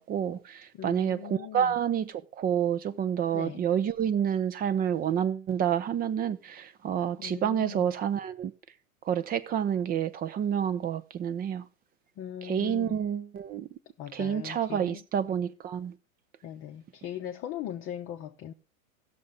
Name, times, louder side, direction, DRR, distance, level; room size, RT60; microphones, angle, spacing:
voice 1, 0.0-8.5 9.1-11.6 12.4-13.7 14.1-15.9, right 9 dB, 20° right, 0.6 m, -29 dB
voice 2, 0.7-1.7 3.3-3.6 7.2-7.9 12.2-13.0 14.0-15.0 16.4-18.5, left 10 dB, 30° left, 0.8 m, -39 dB
16.0 x 6.8 x 3.8 m
hypercardioid pair, 115°, 42 cm